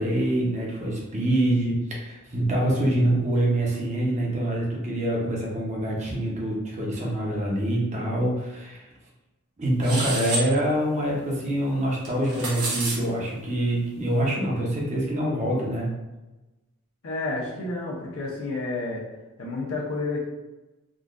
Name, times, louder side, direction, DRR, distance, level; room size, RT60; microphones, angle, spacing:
voice 1, 0.0-8.9 9.6-15.9, right 1 dB, 30° right, -3 dB, 0.7 m, -25 dB
sound 1, 9.8-10.5 12.0-13.0, right 2 dB, 90° right, 0.9 m, -29 dB
voice 2, 17.0-19.0 19.4-20.3, left 3 dB, 70° left, -3 dB, 0.6 m, -30 dB
3.7 x 2.4 x 2.4 m, 1.1 s
head